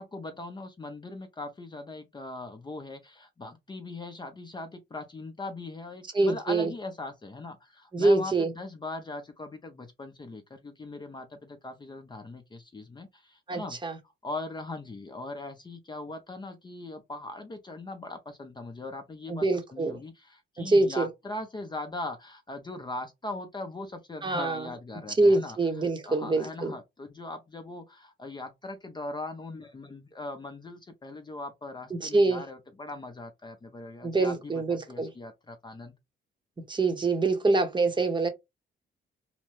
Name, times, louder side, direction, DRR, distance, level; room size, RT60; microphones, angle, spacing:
voice 1, 0.0-13.8 14.2-19.5 19.7-25.6 26.1-35.9, left 2 dB, 20° left, 0.6 m, -40 dB
voice 2, 6.1-6.7 7.9-8.5 13.5-14.0 19.3-20.0 20.6-21.1 24.2-24.7 25.2-26.7 31.9-32.4 34.0-35.1 36.7-38.3, right 2 dB, 25° right, 0.8 m, -25 dB
2.8 x 2.1 x 3.1 m
cardioid pair, 90°, 20 cm